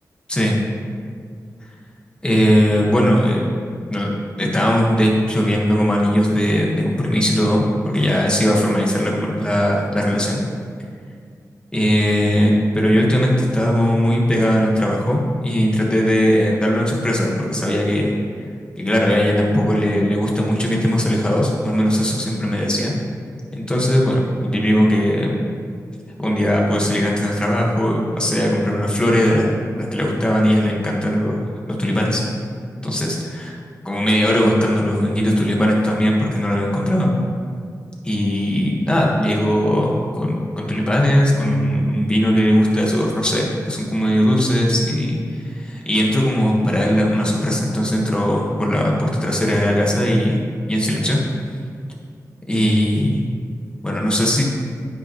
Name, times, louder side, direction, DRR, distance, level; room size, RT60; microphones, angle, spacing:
voice 1, 2.2-3.5 3.9-10.4 11.7-18.1 18.8-22.9 23.5-25.4 26.2-29.5 29.8-32.2 32.8-33.5 33.8-37.1 38.0-50.4 50.7-51.2 52.5-53.3 53.8-54.4, equal, 15° left, -2 dB, 1.6 m, -19 dB
10.0 x 9.9 x 3.2 m, 2.2 s
wide cardioid pair, 120°, 7 cm